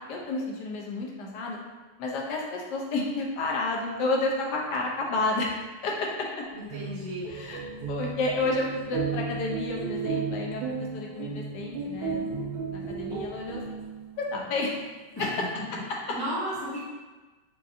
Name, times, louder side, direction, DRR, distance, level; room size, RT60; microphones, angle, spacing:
voice 1, 0.0-1.6 2.0-5.5 5.8-6.4 7.3-7.6 7.9-12.2 12.7-13.8 14.2-14.8, left 2 dB, 75° left, -1 dB, 1.2 m, -30 dB
voice 2, 6.5-7.3 15.2-15.4 16.1-16.8, equal, 25° left, -10 dB, 0.5 m, -33 dB
sound 1, 6.5-14.2, right 5 dB, 75° right, 1.1 m, -34 dB
4.7 x 2.5 x 2.6 m, 1.3 s
omnidirectional pair, 2.0 m